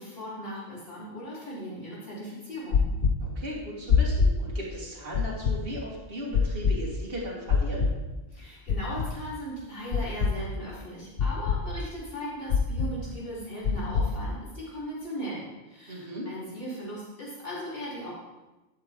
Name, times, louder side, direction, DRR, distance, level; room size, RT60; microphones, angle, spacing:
voice 1, 0.0-2.8 8.3-18.1, equal, 55° left, -8 dB, 4.1 m, -38 dB
sound 1, 2.7-3.1 3.9-4.3 5.1-5.5 6.3-6.7 7.5-7.9 8.7-9.1 9.9-10.3 11.2-11.6 12.5-12.9 13.6-14.1, left 6 dB, 75° left, 1.1 m, -22 dB
voice 2, 3.2-7.9 15.9-16.3, equal, 55° right, -5 dB, 2.3 m, -37 dB
11.0 x 7.9 x 3.7 m, 1.1 s
omnidirectional pair, 1.1 m